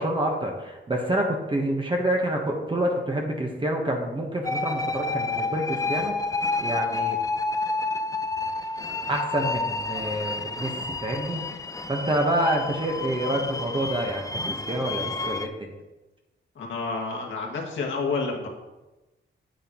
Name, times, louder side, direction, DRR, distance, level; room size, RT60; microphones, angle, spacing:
voice 1, 0.0-6.1 6.6-7.2 9.1-11.4 11.9-15.7, right 1 dB, 25° right, 0 dB, 1.2 m, -27 dB
sound 1, 4.4-15.5, left 3 dB, 15° left, 0.5 m, -30 dB
voice 2, 16.6-18.5, left 4 dB, 80° left, -1 dB, 2.1 m, -29 dB
9.2 x 9.1 x 3.1 m, 1.1 s
wide cardioid pair, 110°, 20 cm